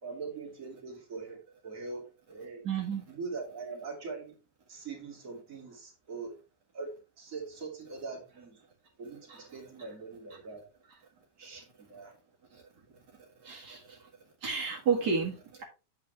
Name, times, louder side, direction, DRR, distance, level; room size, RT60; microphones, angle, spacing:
voice 1, 0.0-2.6 3.1-4.4 4.7-6.4 6.7-8.6 9.0-10.6 11.4-12.1, right 4 dB, 25° right, 2.0 m, -42 dB
voice 2, 2.6-3.0 9.3-9.4 12.5-12.6 13.1-14.1 14.4-15.6, right 5 dB, 65° right, 1.0 m, -32 dB
8.6 x 7.5 x 3.3 m
omnidirectional pair, 5.1 m